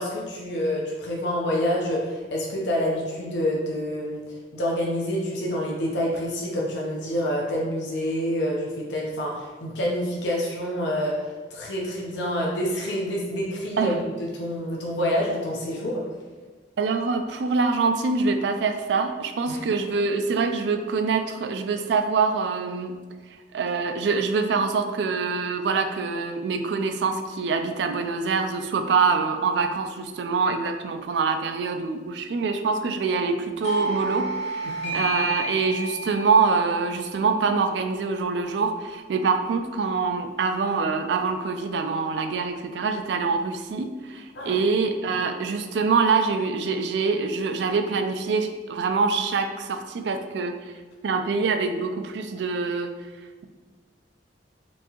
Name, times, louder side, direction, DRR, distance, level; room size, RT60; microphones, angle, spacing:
voice 1, 0.0-16.0 19.5-19.6 34.6-35.0 44.3-44.6, equal, 75° left, -2 dB, 0.6 m, -27 dB
voice 2, 16.8-23.0 23.5-50.6 51.0-52.9, right 4 dB, 70° right, 7 dB, 0.3 m, -25 dB
Doorbell, 33.6-38.9, right 1 dB, 40° left, 1.0 m, -32 dB
4.4 x 2.7 x 2.8 m, 1.3 s
head